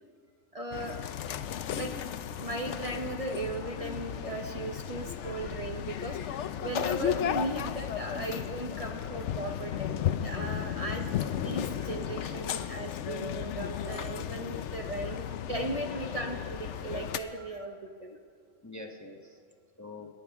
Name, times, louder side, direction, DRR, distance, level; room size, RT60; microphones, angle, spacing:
voice 1, 0.5-1.0 1.8-1.9 2.4-11.1 11.4-18.2, right 1 dB, 35° right, 1 dB, 0.9 m, -37 dB
sound 1, 0.7-17.2, left 9 dB, 75° left, 0.9 m, -34 dB
voice 2, 8.0-8.3 8.9-9.0 11.8-11.9 12.5-12.7 17.4-17.5 18.6-19.4 19.8-20.1, left 2 dB, 15° left, 2 dB, 0.9 m, -47 dB
29.5 x 10.0 x 3.5 m, 2.1 s
omnidirectional pair, 1.2 m